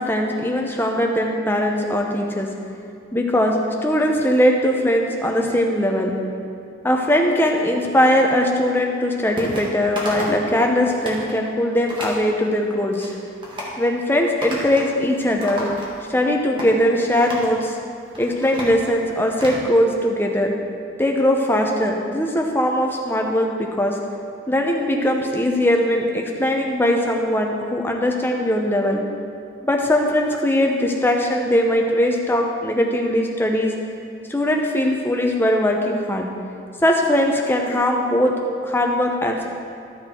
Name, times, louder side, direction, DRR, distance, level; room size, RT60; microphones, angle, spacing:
voice 1, 0.0-2.5 3.1-6.2 6.8-13.1 13.8-15.7 16.1-17.7 18.2-20.5 21.0-24.0 24.5-29.0 29.6-33.7 34.3-36.3 36.8-38.4 38.6-39.5, left 1 dB, 10° left, 1 dB, 0.8 m, -20 dB
sound 1, 9.4-9.7 10.0-10.4 10.8-11.2 11.9-12.2 12.7-13.1 13.4-13.8 14.4-14.9 15.2-16.1 16.6-16.7 17.2-17.5 18.0-19.6, equal, 25° right, 1.6 m, -32 dB
12.5 x 6.6 x 4.4 m, 2.4 s
head